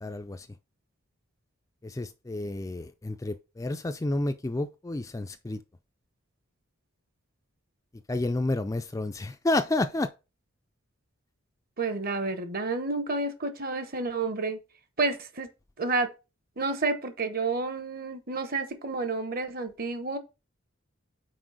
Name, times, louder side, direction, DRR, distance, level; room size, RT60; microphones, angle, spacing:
voice 1, 0.0-0.5 1.8-5.6 8.1-10.1, left 2 dB, 15° left, 0.3 m, -30 dB
voice 2, 11.8-14.6 15.0-15.5 15.8-16.1 16.6-20.2, right 3 dB, 45° right, 0.9 m, -30 dB
6.0 x 4.6 x 4.9 m
head